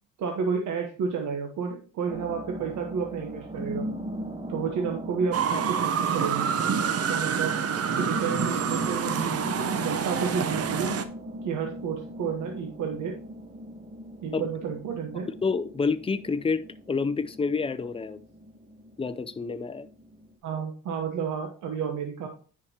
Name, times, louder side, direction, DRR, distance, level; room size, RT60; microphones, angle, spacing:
voice 1, 0.2-3.9 4.5-6.5 7.1-7.6 7.9-10.9 11.4-13.2 14.2-15.3 20.4-22.3, right 6 dB, 75° right, 1.2 m, -31 dB
sound 1, 2.1-20.3, equal, 20° right, 1.2 m, -39 dB
sound 2, 5.3-11.0, right 7 dB, 55° right, 0.8 m, -27 dB
voice 2, 15.4-16.6 16.9-18.2 19.0-19.9, left 4 dB, 20° left, 0.5 m, -28 dB
9.8 x 5.0 x 2.9 m
cardioid pair, 90°, 30 cm